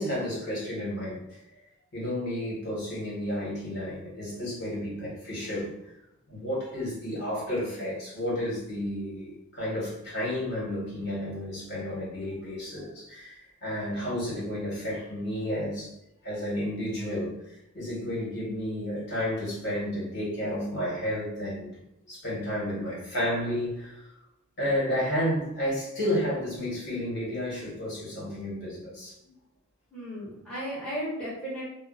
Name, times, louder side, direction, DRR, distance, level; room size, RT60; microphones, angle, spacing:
voice 1, 0.0-1.4 1.9-5.7 6.3-15.9 16.2-21.8 22.1-24.0 24.6-29.3, equal, 55° left, -7 dB, 1.4 m, -32 dB
voice 2, 29.9-31.6, equal, 5° left, -9 dB, 1.0 m, -35 dB
2.6 x 2.0 x 3.9 m, 0.84 s
head